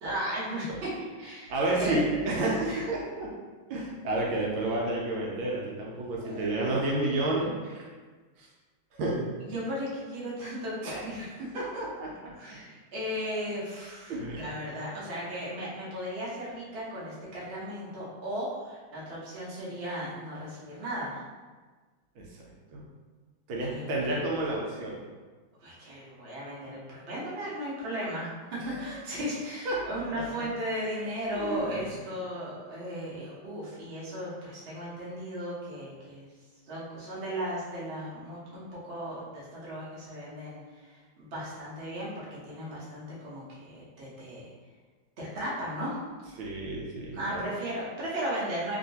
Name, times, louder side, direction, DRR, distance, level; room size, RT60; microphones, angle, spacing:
voice 1, 0.0-0.9 1.2-2.2 2.7-2.9 6.2-6.5 9.4-11.6 12.4-21.2 23.7-24.2 25.6-36.3 36.7-44.5 45.2-46.0 47.1-48.8, equal, 45° right, -8 dB, 0.8 m, -36 dB
voice 2, 1.5-3.3 3.7-7.9 8.4-8.5 8.9-9.3 10.8-11.0 11.6-12.3 14.1-14.5 22.2-22.3 22.7-22.8 23.5-25.0 29.6-30.5 31.3-31.8 46.4-47.5, right 2 dB, 75° right, -3 dB, 1.3 m, -30 dB
3.1 x 2.8 x 2.7 m, 1.4 s
omnidirectional pair, 2.3 m